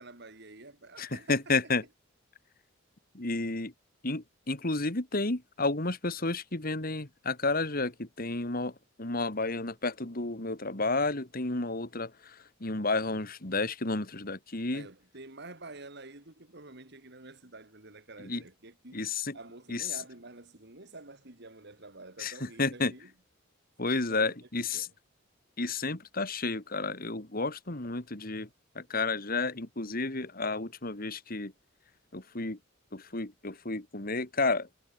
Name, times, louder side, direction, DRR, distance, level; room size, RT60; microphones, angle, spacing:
voice 1, 0.0-1.5 14.7-19.0 19.3-23.1 24.1-24.3 24.7-24.9, right 2 dB, 55° right, 3.4 m, -48 dB
voice 2, 1.0-1.8 3.1-3.7 4.0-14.9 18.2-18.4 18.9-19.4 19.7-20.0 22.2-22.9 23.8-24.9 25.6-28.5 28.7-31.5 32.1-32.6 32.9-34.7, left 3 dB, 45° left, 2.2 m, -31 dB
head